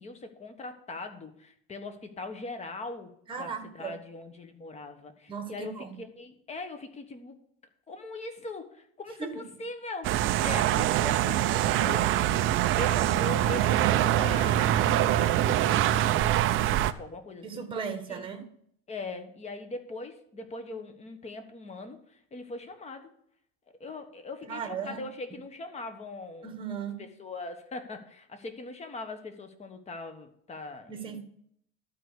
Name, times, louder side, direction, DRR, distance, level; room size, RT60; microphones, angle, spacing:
voice 1, 0.0-3.1 3.4-7.4 7.9-12.5 12.7-17.7 18.1-18.3 18.9-23.1 23.8-26.5 27.0-31.2, left 2 dB, 20° left, 1.2 m, -41 dB
voice 2, 3.3-4.0 5.3-6.0 9.2-9.4 17.4-18.5 24.5-25.0 26.4-27.0 30.9-31.2, right 6 dB, 15° right, 1.3 m, -36 dB
sound 1, 10.0-16.9, right 12 dB, 40° right, 0.5 m, -24 dB
12.0 x 4.7 x 6.6 m
supercardioid pair, 135°, 34 cm